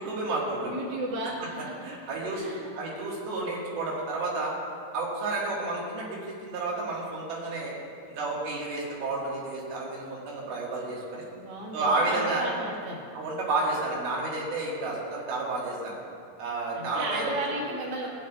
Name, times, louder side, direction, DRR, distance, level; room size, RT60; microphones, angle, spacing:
voice 1, 0.0-0.8 1.4-1.5 1.8-2.5 2.8-4.5 4.9-7.7 8.1-11.3 11.7-12.5 13.1-16.0 16.4-17.3, right 2 dB, 80° right, -4 dB, 3.6 m, -31 dB
voice 2, 0.6-1.9 2.3-2.7 11.3-13.0 16.7-18.1, right 1 dB, 50° right, -3 dB, 1.4 m, -34 dB
17.0 x 9.6 x 2.3 m, 2.4 s
omnidirectional pair, 4.3 m